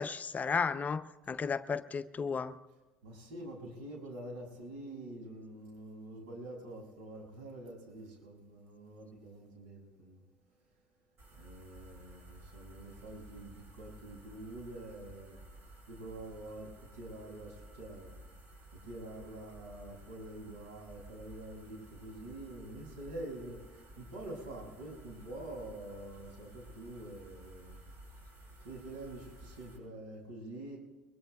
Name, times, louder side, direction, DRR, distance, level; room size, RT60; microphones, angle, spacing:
voice 1, 0.0-2.6, left 5 dB, 30° left, 11 dB, 0.6 m, -34 dB
voice 2, 3.0-10.2 11.3-15.4 15.6-18.2 18.8-27.8 28.6-30.8, right 1 dB, 80° right, -1 dB, 6.6 m, -46 dB
sound 1, 11.2-29.8, right 1 dB, 50° right, 7.0 m, -54 dB
23.0 x 22.0 x 2.3 m, 1.1 s
hypercardioid pair, 80°, 5 cm